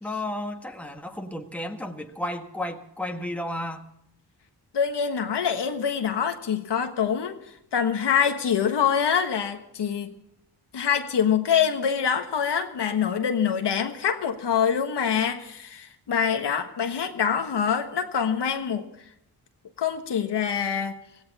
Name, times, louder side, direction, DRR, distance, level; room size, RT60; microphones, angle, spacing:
voice 1, 0.0-3.9, left 1 dB, 5° left, 1.6 m, -33 dB
voice 2, 4.7-7.4 7.7-10.1 10.7-18.9 19.8-21.0, left 7 dB, 80° left, 1.5 m, -25 dB
16.5 x 16.0 x 4.2 m
cardioid pair, 60°, 41 cm